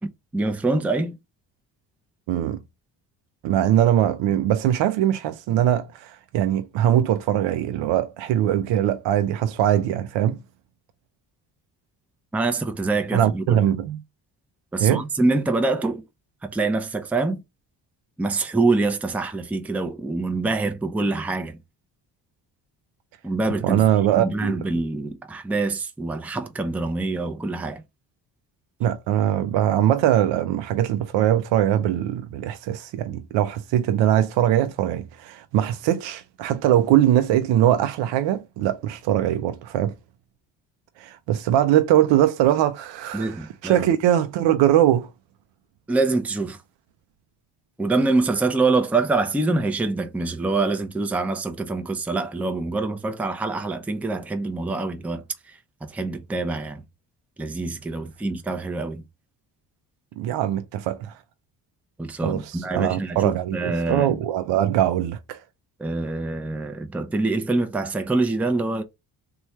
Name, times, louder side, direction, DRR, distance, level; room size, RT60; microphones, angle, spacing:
voice 1, 0.0-1.2 12.3-13.6 14.7-16.0 16.4-17.4 18.2-21.6 23.2-23.8 24.2-27.8 43.1-43.9 45.9-46.6 47.8-56.8 57.4-59.1 62.0-64.2 65.8-68.8, right 3 dB, 5° right, 0.5 m, -25 dB
voice 2, 2.3-2.6 3.4-10.4 13.1-14.0 14.8-15.0 23.6-24.6 28.8-39.9 41.0-45.1 60.2-61.1 62.2-65.4, right 11 dB, 70° right, 0.5 m, -21 dB
3.1 x 2.3 x 4.1 m
supercardioid pair, 70°, 44 cm